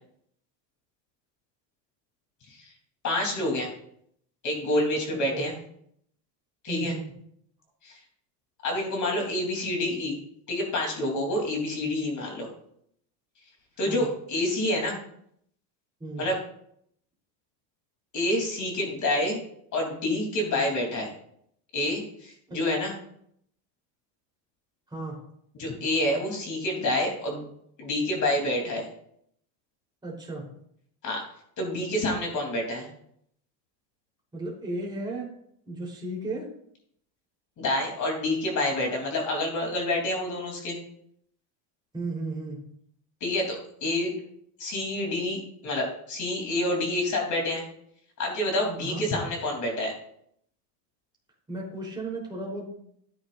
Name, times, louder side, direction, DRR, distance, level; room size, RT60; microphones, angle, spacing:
voice 1, 3.0-3.7 4.4-5.5 6.6-6.9 7.8-7.9 8.6-10.2 10.5-12.5 13.8-15.0 16.2-16.4 18.1-19.4 19.7-21.1 21.7-22.9 25.5-27.4 27.8-28.9 31.0-31.2 31.6-32.9 37.6-40.8 43.2-44.1 44.6-47.6 48.2-49.9, left 1 dB, 35° left, 1 dB, 3.5 m, -28 dB
voice 2, 5.1-5.5 6.7-7.0 13.9-14.1 16.0-16.3 22.5-22.6 24.9-25.2 30.0-30.5 34.3-35.3 35.7-36.5 41.9-42.6 48.8-49.2 51.5-52.7, right 2 dB, 10° right, -4 dB, 3.7 m, -34 dB
13.0 x 9.7 x 2.6 m, 0.69 s
supercardioid pair, 140°, 49 cm